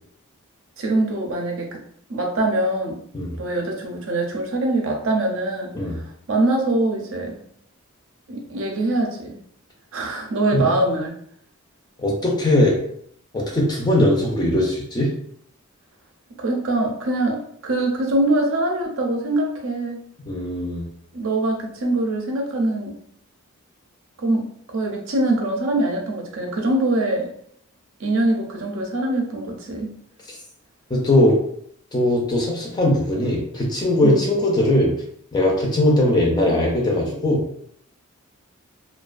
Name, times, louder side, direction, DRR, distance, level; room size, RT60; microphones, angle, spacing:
voice 1, 0.8-1.8 2.1-3.0 3.4-7.3 8.3-9.3 9.9-11.1 16.4-20.0 21.1-22.9 24.2-24.4 24.7-27.3 28.0-29.9 34.0-34.2, right 2 dB, 60° right, 1 dB, 0.5 m, -23 dB
voice 2, 12.0-12.8 13.3-15.1 20.3-20.9 30.9-31.4 31.9-34.9 35.3-37.4, left 1 dB, 20° left, -2 dB, 0.4 m, -20 dB
2.3 x 2.2 x 2.4 m, 0.66 s
head